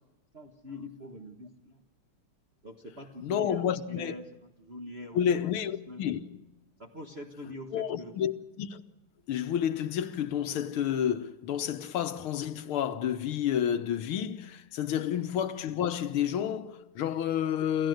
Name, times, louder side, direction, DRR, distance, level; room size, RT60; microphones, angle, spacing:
voice 1, 0.3-1.8 2.6-5.4 5.9-6.0 6.8-8.2, left 1 dB, 30° right, 1.6 m, -44 dB
voice 2, 3.2-4.2 5.1-6.4 7.7-8.8 9.3-17.9, left 9 dB, 80° left, 1.9 m, -30 dB
28.0 x 14.5 x 7.9 m
omnidirectional pair, 2.4 m